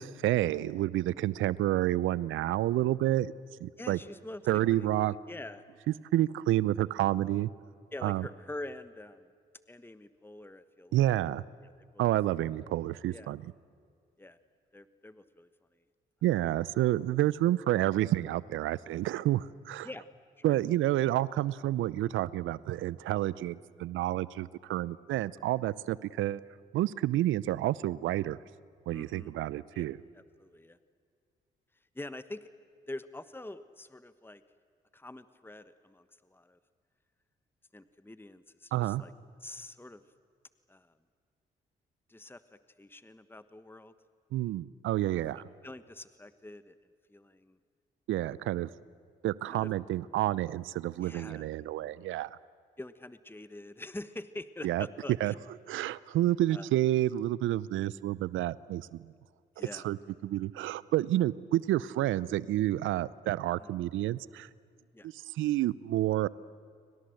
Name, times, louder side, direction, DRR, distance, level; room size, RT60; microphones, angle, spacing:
voice 1, 0.0-3.3 3.6-4.0 4.5-5.1 6.1-7.5 8.0-8.3 10.9-11.4 12.0-13.4 16.2-19.9 20.4-26.4 26.7-28.4 28.9-30.0 38.7-39.0 44.3-45.5 48.1-48.7 49.2-52.3 54.6-54.9 55.2-55.3 55.7-59.1 59.7-60.0 60.2-64.5 65.0-66.3, right 14 dB, 75° right, 21 dB, 0.6 m, -29 dB
voice 2, 3.8-4.9 5.3-5.6 7.9-9.3 9.7-11.1 11.6-12.1 13.1-13.3 14.2-14.4 14.7-15.5 19.8-20.1 20.4-20.6 28.9-29.3 29.7-29.9 30.1-30.8 31.9-32.5 32.9-34.4 34.9-36.6 37.7-39.1 39.4-40.0 40.7-40.9 42.1-43.9 45.0-45.2 45.6-46.8 47.1-47.6 49.5-49.7 51.0-51.5 52.8-55.3 56.5-56.7 59.6-59.9 63.6-63.7 64.9-65.1, left 2 dB, 10° left, 13 dB, 1.2 m, -45 dB
30.0 x 24.5 x 7.9 m, 2.1 s
hypercardioid pair, 45°, 20 cm